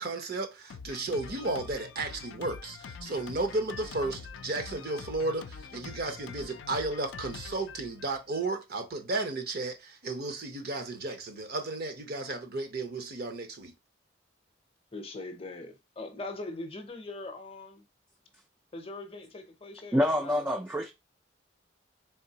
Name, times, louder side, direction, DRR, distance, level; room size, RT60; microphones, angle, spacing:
voice 1, 0.0-13.7, right 2 dB, 50° right, 0.8 m, -33 dB
Drum kit, 0.7-8.5, left 5 dB, 75° left, 0.3 m, -45 dB
voice 2, 14.9-17.9 18.7-20.4, left 2 dB, 30° left, 0.6 m, -41 dB
voice 3, 19.9-20.9, left 1 dB, 10° right, 0.3 m, -26 dB
3.8 x 3.6 x 2.8 m
head